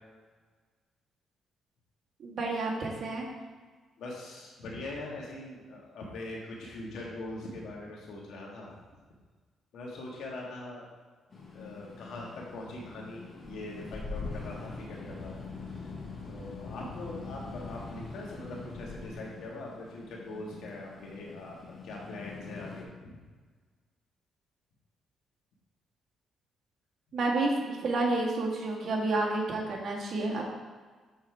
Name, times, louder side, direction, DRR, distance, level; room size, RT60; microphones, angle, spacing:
voice 1, 2.2-3.3 27.1-30.4, right 2 dB, 55° right, -1 dB, 1.6 m, -30 dB
voice 2, 4.0-8.7 9.7-10.9 11.5-15.5 16.2-23.2, left 2 dB, 75° left, -2 dB, 1.7 m, -42 dB
sound 1, 11.3-22.8, left 3 dB, 45° left, 1.3 m, -43 dB
7.3 x 4.3 x 4.7 m, 1.4 s
cardioid pair, 90°, 0 cm